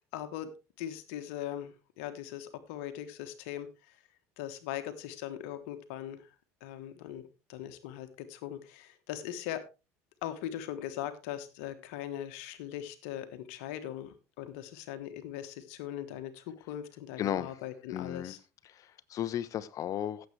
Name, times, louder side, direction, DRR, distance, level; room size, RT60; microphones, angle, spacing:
voice 1, 0.1-0.5 0.8-4.0 4.4-6.3 6.6-9.6 10.2-18.4, left 11 dB, 75° left, 9 dB, 1.3 m, -40 dB
voice 2, 17.2-17.5 17.9-18.3 18.6-20.3, left 10 dB, 50° left, 15 dB, 1.0 m, -35 dB
15.5 x 7.7 x 3.3 m, 0.29 s
supercardioid pair, 85°, 7 cm